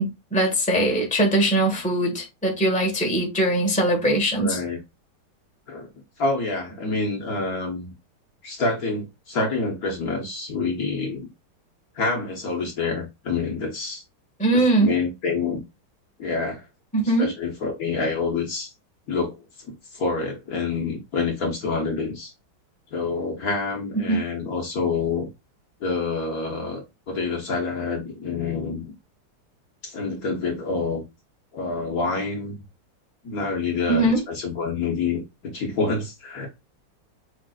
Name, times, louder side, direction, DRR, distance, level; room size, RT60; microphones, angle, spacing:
voice 1, 0.0-4.6 14.4-14.9 16.9-17.3 24.1-24.2 33.9-34.2, right 1 dB, 5° left, 1.3 m, -21 dB
voice 2, 4.4-4.8 5.7-5.9 6.2-7.9 8.4-11.3 11.9-14.0 14.5-15.6 16.2-16.6 17.2-18.7 19.1-19.4 19.6-22.3 22.9-25.3 25.8-28.9 29.8-31.0 31.5-32.6 33.2-36.5, left 4 dB, 55° left, 1.6 m, -27 dB
6.4 x 3.4 x 2.4 m
omnidirectional pair, 2.0 m